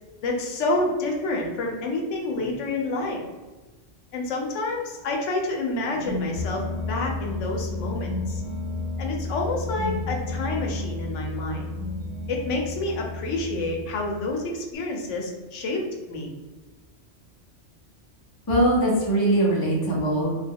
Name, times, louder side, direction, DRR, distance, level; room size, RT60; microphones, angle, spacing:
voice 1, 0.2-3.2 4.1-8.4 9.0-11.7 12.3-16.3, left 2 dB, 85° left, 1 dB, 0.9 m, -28 dB
sound 1, 5.8-14.6, left 2 dB, 60° right, 0.9 m, -32 dB
voice 2, 18.5-20.3, right 1 dB, 30° left, -3 dB, 0.4 m, -21 dB
2.4 x 2.1 x 3.4 m, 1.2 s
omnidirectional pair, 1.2 m